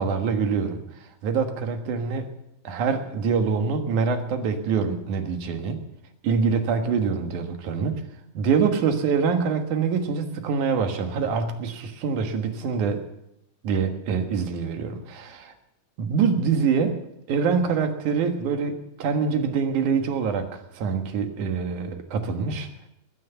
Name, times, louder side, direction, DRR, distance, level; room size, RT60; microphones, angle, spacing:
voice 1, 0.0-2.3 2.6-5.8 6.2-8.0 8.3-13.0 13.6-15.5 16.0-17.0 17.3-22.7, right 5 dB, 70° right, 6 dB, 2.9 m, -25 dB
20.0 x 9.9 x 6.8 m, 0.83 s
omnidirectional pair, 3.7 m